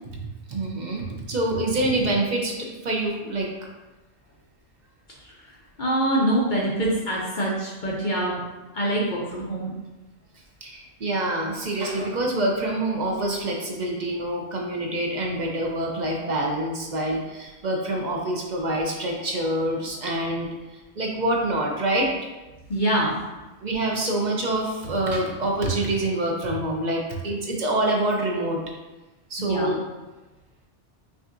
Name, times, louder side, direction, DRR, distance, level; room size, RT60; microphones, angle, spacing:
voice 1, 0.5-3.5 10.6-22.1 23.6-28.6 29.3-29.8, right 1 dB, 45° right, 0 dB, 0.6 m, -26 dB
voice 2, 5.8-8.4 8.7-9.7 22.7-23.2 29.4-29.7, right 1 dB, 50° left, -4 dB, 0.7 m, -24 dB
5.8 x 2.6 x 2.5 m, 1.1 s
omnidirectional pair, 1.2 m